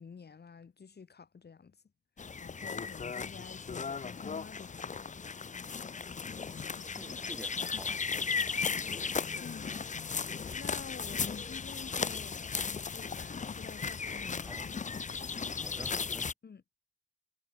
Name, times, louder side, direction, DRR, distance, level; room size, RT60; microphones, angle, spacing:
voice 1, 0.0-1.8 2.4-5.0 9.4-10.0 10.5-14.5 16.4-16.6, left 6 dB, 55° left, 2.3 m, -49 dB
sound 1, 2.2-16.3, left 5 dB, 40° left, 0.7 m, -36 dB
sound 2, 5.8-10.8, left 8 dB, 80° left, 4.2 m, -53 dB
voice 2, 6.9-8.1 14.4-14.7 15.5-16.3, right 1 dB, 5° right, 2.7 m, -49 dB
cardioid pair, 65°, 20 cm